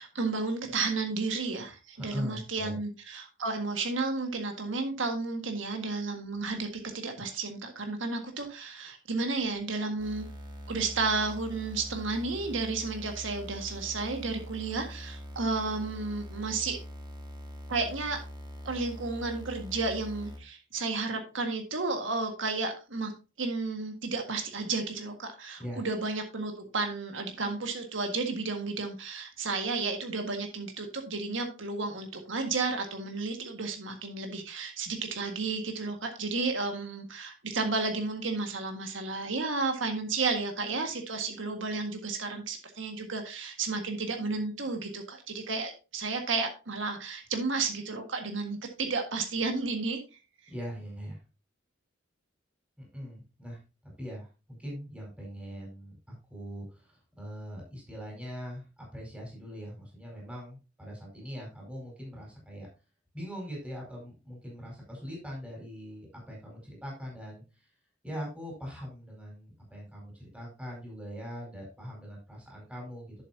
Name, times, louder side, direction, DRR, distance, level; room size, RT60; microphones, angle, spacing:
voice 1, 0.0-6.7 6.9-10.3 10.7-16.8 17.7-18.2 18.7-23.1 23.4-50.0, right 3 dB, 70° right, 4 dB, 1.7 m, -32 dB
voice 2, 2.0-2.8 25.6-25.8 50.5-51.2 52.8-53.6 54.0-55.9 56.3-62.7 63.1-67.4 68.0-73.1, equal, 5° right, -3 dB, 4.8 m, -41 dB
sound 1, 10.0-20.4, equal, 25° right, 2.1 m, -43 dB
11.0 x 7.7 x 2.8 m, 0.30 s
head